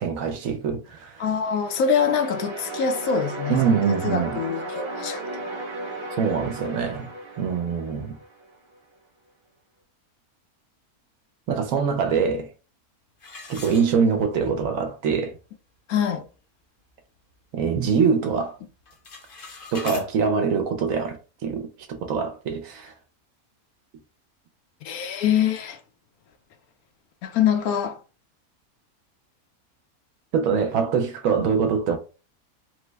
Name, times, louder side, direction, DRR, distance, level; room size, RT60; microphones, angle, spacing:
voice 1, 0.0-1.2 3.5-4.4 6.1-7.1 7.4-8.2 11.5-12.5 13.5-15.3 17.5-18.6 19.7-21.2 21.4-22.9 30.3-32.0, right 6 dB, 70° right, 1.0 m, -24 dB
voice 2, 1.2-5.2 15.9-16.2 24.8-25.8 27.2-28.0, left 7 dB, 75° left, 1.0 m, -24 dB
sound 1, 1.5-8.5, right 2 dB, 25° right, 0.7 m, -35 dB
sound 2, 13.2-14.5 14.9-15.0 15.6-15.7 16.1-16.4 16.8-17.9 18.2-18.5 18.8-20.1, left 4 dB, 50° left, 0.7 m, -41 dB
3.2 x 2.1 x 3.2 m
omnidirectional pair, 1.6 m